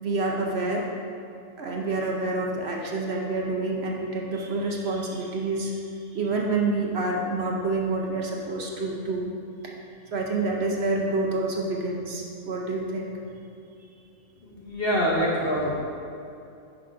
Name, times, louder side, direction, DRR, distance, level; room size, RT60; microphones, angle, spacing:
voice 1, 0.0-0.9 1.6-5.8 6.1-9.3 9.6-9.7 10.1-13.1, right 2 dB, 55° right, -1 dB, 0.8 m, -28 dB
voice 2, 14.4-15.8, equal, 50° left, -5 dB, 0.9 m, -25 dB
9.7 x 5.7 x 2.5 m, 2.6 s
omnidirectional pair, 1.5 m